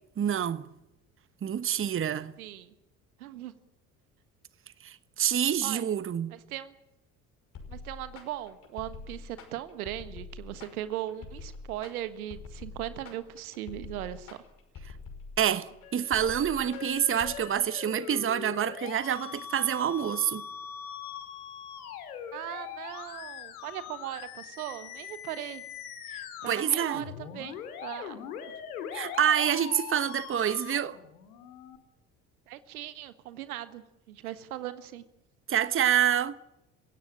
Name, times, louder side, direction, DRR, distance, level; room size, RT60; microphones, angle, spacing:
voice 1, 0.2-0.7 1.4-2.3 4.8-6.3 15.4-20.4 26.1-27.0 28.9-31.0 35.5-36.3, right 9 dB, 30° right, 1.1 m, -27 dB
voice 2, 2.4-2.7 3.2-3.5 5.6-6.0 6.3-6.7 7.7-14.4 22.3-25.6 26.4-27.6 27.8-28.2 32.5-35.0, right 13 dB, 75° right, 1.5 m, -39 dB
sound 1, 7.5-17.4, left 4 dB, 45° left, 5.8 m, -45 dB
Musical instrument, 15.8-31.8, left 8 dB, 75° left, 2.7 m, -42 dB
28.5 x 16.5 x 8.9 m
figure-of-eight pair, 60°, 44 cm